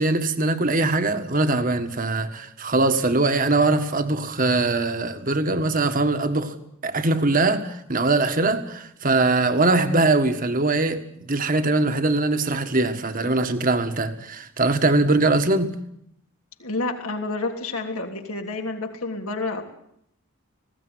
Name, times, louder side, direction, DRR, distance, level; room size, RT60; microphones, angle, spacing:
voice 1, 0.0-6.6 6.8-15.8, right 2 dB, 40° right, 1.7 m, -22 dB
voice 2, 16.6-19.6, left 3 dB, 80° left, 3.3 m, -29 dB
19.5 x 17.0 x 9.7 m
head